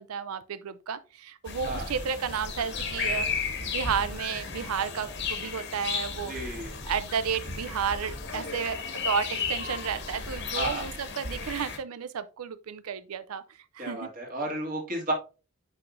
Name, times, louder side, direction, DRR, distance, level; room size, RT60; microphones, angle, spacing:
voice 1, 0.0-3.3 3.7-6.3 6.9-13.4 13.7-14.1, right 7 dB, 85° right, 0.5 m, -32 dB
sound 1, 1.5-11.8, left 5 dB, 55° left, 1.6 m, -34 dB
voice 2, 6.3-6.8 10.5-10.8 13.8-15.1, right 1 dB, 40° right, 2.2 m, -32 dB
9.5 x 4.9 x 2.6 m
head